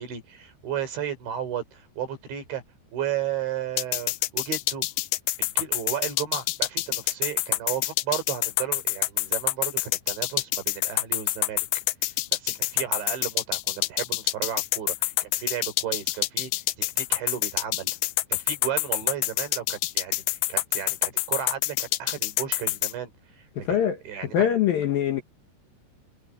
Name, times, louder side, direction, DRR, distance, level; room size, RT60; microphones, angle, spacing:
voice 1, 0.0-2.6 2.9-4.8 5.4-11.7 12.3-16.6 17.0-17.9 18.3-23.1 23.4-24.5, right 9 dB, 70° right, 7.1 m, -34 dB
sound 1, 3.8-22.9, left 18 dB, 80° left, 3.0 m, -27 dB
voice 2, 23.6-24.0 24.3-25.2, left 9 dB, 65° left, 2.5 m, -23 dB
omnidirectional pair, 5.5 m